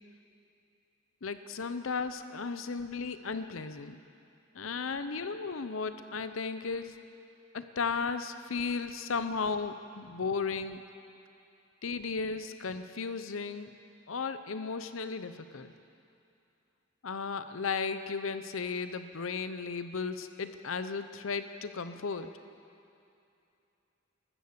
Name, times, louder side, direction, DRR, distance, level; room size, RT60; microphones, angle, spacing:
voice 1, 1.2-4.0 4.5-7.0 7.5-10.8 11.8-13.7 14.1-15.7 17.0-22.4, left 5 dB, 85° left, 10 dB, 0.8 m, -35 dB
15.0 x 13.5 x 6.8 m, 2.6 s
head